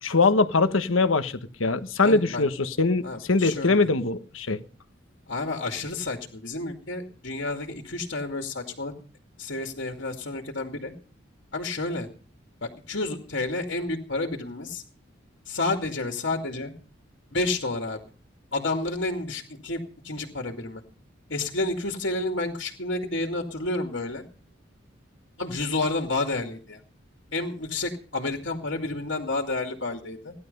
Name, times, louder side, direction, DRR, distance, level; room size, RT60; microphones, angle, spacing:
voice 1, 0.0-4.6, left 3 dB, 90° left, 10 dB, 1.3 m, -22 dB
voice 2, 2.0-2.5 3.0-3.9 5.3-8.9 9.4-10.9 11.5-12.1 12.6-14.8 15.5-16.7 17.3-18.0 18.5-20.8 21.3-24.2 25.4-26.8 27.3-30.3, left 2 dB, 70° left, 3 dB, 2.5 m, -30 dB
17.5 x 12.0 x 5.5 m, 0.39 s
head